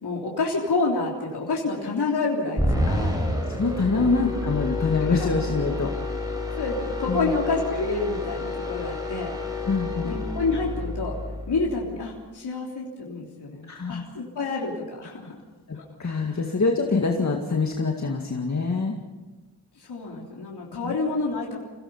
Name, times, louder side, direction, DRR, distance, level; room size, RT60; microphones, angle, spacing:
voice 1, 0.0-3.1 3.9-4.1 4.9-5.3 6.6-9.3 10.0-11.1 11.5-15.3 15.7-15.8 16.3-16.4 19.7-21.6, left 3 dB, 75° left, -3 dB, 3.5 m, -28 dB
sound 1, 2.6-11.9, left 2 dB, 10° right, 6.4 m, -29 dB
voice 2, 2.9-3.2 3.5-5.9 7.1-7.3 9.7-10.1 13.7-14.0 15.7-19.0 20.8-21.0, left 4 dB, 45° left, 2 dB, 2.0 m, -25 dB
28.0 x 17.5 x 5.7 m, 1.2 s
wide cardioid pair, 90°, 40 cm